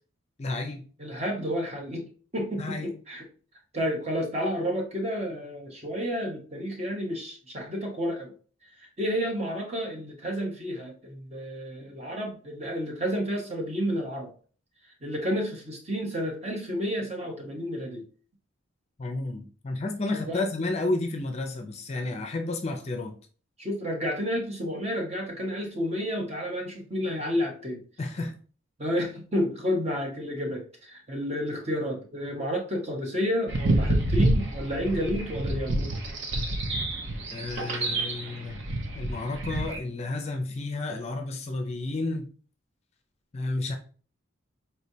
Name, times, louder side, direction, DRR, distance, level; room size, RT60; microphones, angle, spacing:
voice 1, 0.4-0.9 2.6-2.9 19.0-23.1 28.0-28.3 37.3-38.6 38.9-42.3 43.3-43.7, left 2 dB, 30° left, 4 dB, 0.5 m, -31 dB
voice 2, 1.0-2.1 2.3-3.2 3.7-8.3 8.8-14.3 15.0-18.0 20.1-20.5 23.6-27.8 28.8-35.9, equal, 30° right, 1 dB, 1.0 m, -31 dB
sound 1, 33.5-39.8, right 1 dB, 60° right, 0.8 m, -28 dB
4.4 x 3.2 x 2.7 m, 0.40 s
head